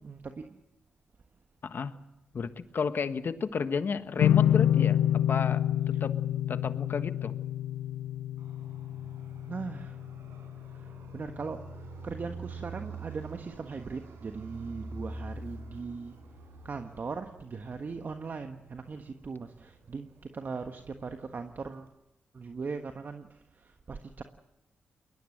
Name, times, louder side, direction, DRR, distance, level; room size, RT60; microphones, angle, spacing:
voice 1, 0.0-0.6 9.5-10.0 10.7-11.6 12.0-16.2 16.6-21.9 22.3-24.2, right 4 dB, 50° right, 6 dB, 1.4 m, -39 dB
voice 2, 1.6-1.9 2.3-6.2 6.5-7.3, left 5 dB, 55° left, 10 dB, 1.5 m, -32 dB
sound 1, 4.2-11.4, left 11 dB, 90° left, 0.7 m, -28 dB
Fixed-wing aircraft airplane, 8.4-21.9, right 3 dB, 75° right, 5.2 m, -47 dB
21.5 x 19.5 x 7.8 m, 0.92 s
supercardioid pair, 55°, 4 cm